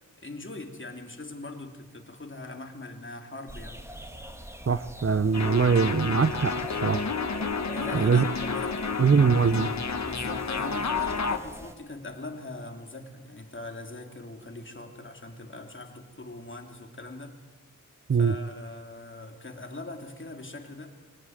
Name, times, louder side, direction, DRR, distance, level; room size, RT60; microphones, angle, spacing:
voice 1, 0.2-3.8 7.7-9.0 10.0-17.4 18.2-20.9, left 2 dB, 40° left, 4 dB, 2.9 m, -41 dB
sound 1, 3.5-11.7, equal, 10° right, 1.8 m, -43 dB
voice 2, 4.7-6.5 6.8-7.1 7.9-8.2 9.0-9.7 18.1-18.3, right 5 dB, 45° right, 15 dB, 0.7 m, -22 dB
sound 2, 5.3-11.4, left 5 dB, 60° left, 1.3 m, -30 dB
24.5 x 17.5 x 9.3 m, 1.3 s
wide cardioid pair, 90°, 32 cm